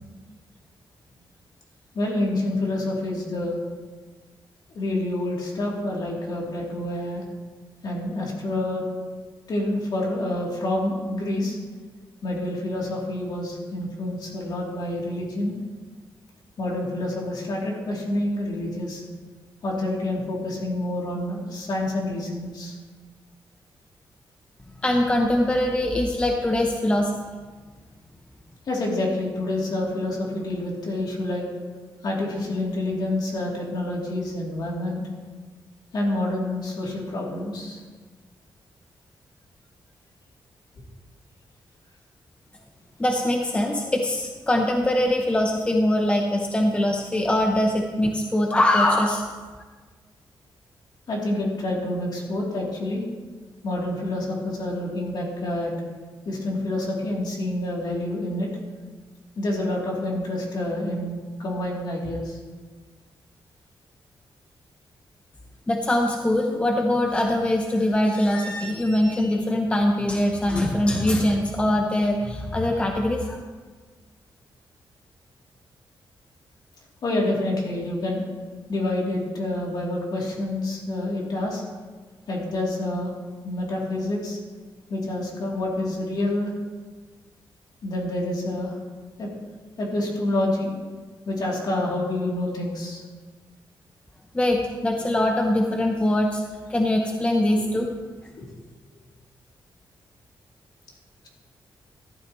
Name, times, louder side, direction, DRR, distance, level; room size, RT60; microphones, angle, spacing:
voice 1, 1.9-3.6 4.7-7.2 7.8-8.8 9.5-11.6 12.2-15.6 16.6-19.0 19.6-22.7 28.7-31.4 32.0-35.0 35.9-37.8 51.1-53.0 53.6-55.7 56.2-58.5 59.4-62.4 77.0-78.2 78.7-81.6 82.3-83.1 83.4-84.4 84.9-86.5 87.8-88.8 89.2-89.3 89.8-90.7 91.3-93.0 97.6-97.7 98.4-98.6, left 1 dB, 55° left, -3 dB, 2.9 m, -27 dB
voice 2, 24.8-27.1 43.0-49.3 65.7-73.4 94.3-96.4 96.7-97.9, left 1 dB, 15° left, 2 dB, 0.7 m, -22 dB
14.5 x 12.0 x 3.1 m, 1.4 s
wide cardioid pair, 160°, 8 cm